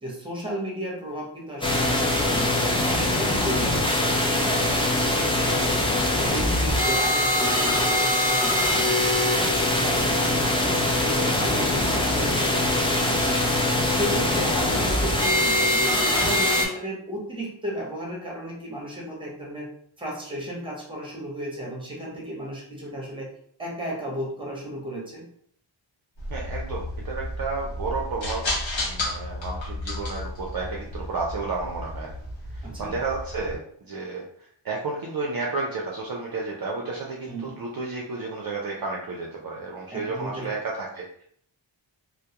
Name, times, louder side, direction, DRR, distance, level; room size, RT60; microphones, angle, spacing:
voice 1, 0.0-2.5 2.8-4.0 4.4-5.9 6.1-10.8 11.0-13.4 13.8-19.7 20.0-23.3 23.6-25.2 32.6-33.0 37.3-37.6 39.9-40.5, right 1 dB, 10° right, -2 dB, 0.8 m, -34 dB
sound 1, 1.6-16.7, left 1 dB, 10° left, 0.4 m, -22 dB
sound 2, 26.2-33.5, left 1 dB, 65° left, 0.8 m, -33 dB
voice 2, 26.3-28.5 28.8-32.1 32.5-41.2, right 3 dB, 50° right, -2 dB, 0.4 m, -32 dB
2.2 x 2.1 x 2.8 m, 0.63 s
wide cardioid pair, 80°, 49 cm